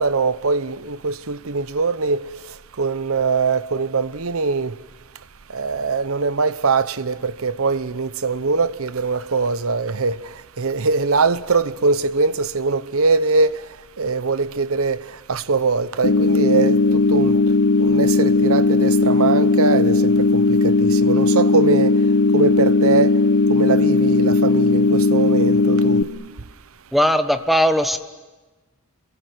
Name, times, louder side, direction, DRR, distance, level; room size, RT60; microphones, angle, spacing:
voice 1, 0.0-2.2 2.8-4.7 5.5-10.2 10.6-13.7 14.0-15.0 15.3-17.4 17.8-21.9 22.3-23.1 23.5-26.0, right 4 dB, 65° right, 0.9 m, -22 dB
sound 1, 16.0-26.0, left 3 dB, 80° left, 1.2 m, -17 dB
voice 2, 26.9-28.0, equal, ahead, 1.2 m, -18 dB
28.0 x 22.5 x 9.3 m
head